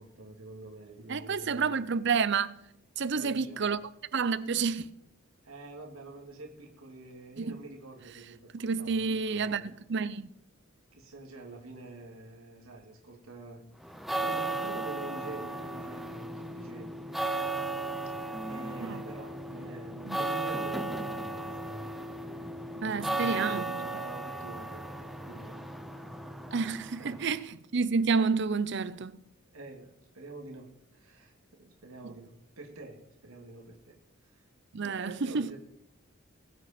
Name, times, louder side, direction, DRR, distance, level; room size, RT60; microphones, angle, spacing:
voice 1, 0.0-1.8 3.1-3.7 5.4-9.6 10.9-17.0 18.2-21.8 22.8-25.6 27.0-27.3 29.5-34.0 34.2-34.4 34.8-35.6, right 2 dB, 80° right, 2.3 m, -47 dB
voice 2, 1.1-2.6 3.0-3.8 4.1-4.9 7.4-7.6 8.5-10.3 18.8-19.0 20.0-20.2 22.8-23.6 26.5-27.5 27.7-29.2 32.0-32.1 34.7-35.5, right 5 dB, 55° right, 0.6 m, -29 dB
sound 1, 13.8-27.4, right 2 dB, ahead, 0.7 m, -35 dB
22.0 x 8.2 x 4.3 m
head